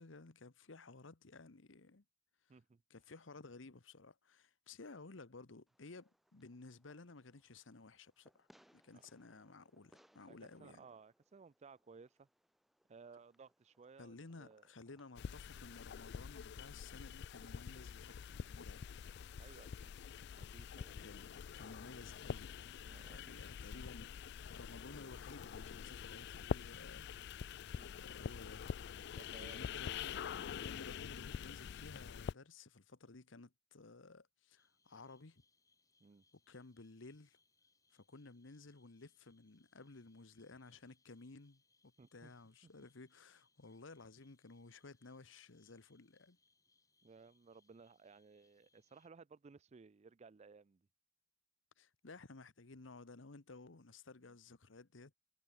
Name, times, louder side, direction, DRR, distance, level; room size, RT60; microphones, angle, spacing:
voice 1, 0.0-2.0 2.9-8.5 8.7-10.8 14.0-18.9 21.0-22.6 23.1-27.6 28.0-28.7 29.4-30.3 30.5-35.4 36.5-37.4 37.9-46.4 51.8-55.1, left 3 dB, 90° left, 1.2 m, -56 dB
voice 2, 2.5-2.8 8.9-9.0 10.3-12.3 12.9-14.7 19.4-21.0 22.9-23.9 27.7-27.9 29.1-29.9 36.0-36.2 42.0-42.3 42.6-42.7 47.0-50.9, right 4 dB, 35° right, 0.4 m, -60 dB
Fireworks, 5.7-15.7, equal, ahead, 4.7 m, -73 dB
sound 1, 15.2-32.3, left 7 dB, 60° left, 0.4 m, -46 dB
sound 2, 34.6-49.1, left 4 dB, 20° left, 2.7 m, -78 dB
head